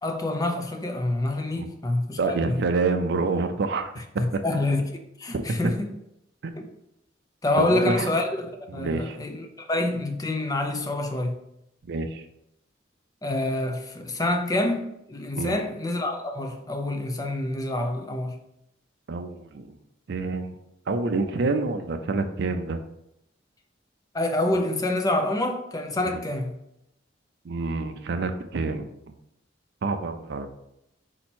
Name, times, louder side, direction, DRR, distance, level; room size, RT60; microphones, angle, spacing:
voice 1, 0.0-2.6 4.0-4.8 5.2-5.9 6.6-6.7 7.4-8.5 8.7-11.4 13.2-18.4 24.1-26.6, left 1 dB, 20° left, 4 dB, 0.5 m, -27 dB
voice 2, 2.2-3.9 4.3-4.4 5.3-5.4 6.4-6.5 7.6-8.1 8.7-9.2 11.9-12.2 15.4-15.6 19.1-19.6 20.1-20.6 20.9-22.8 27.4-28.9 29.8-30.5, right 3 dB, 60° right, 7 dB, 0.4 m, -27 dB
4.3 x 2.9 x 4.3 m, 0.82 s
head